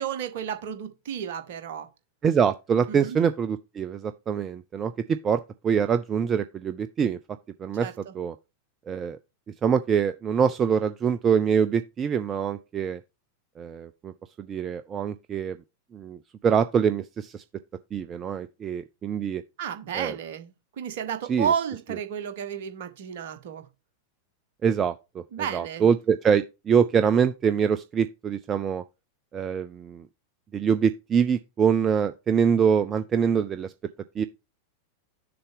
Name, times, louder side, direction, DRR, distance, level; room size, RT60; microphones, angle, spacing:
voice 1, 0.0-1.9 2.9-3.2 7.8-8.1 19.6-23.6 25.3-25.9, right 8 dB, 55° right, 1.2 m, -32 dB
voice 2, 2.2-7.2 7.6-7.9 8.1-8.3 8.9-9.2 9.6-13.0 13.6-15.6 15.9-16.2 16.4-17.4 17.9-19.4 19.9-20.2 21.3-21.5 24.6-28.8 29.3-30.1 30.5-33.7 34.2-34.3, right 7 dB, 25° right, 0.4 m, -24 dB
6.9 x 4.1 x 5.2 m
figure-of-eight pair, 90°, 0 cm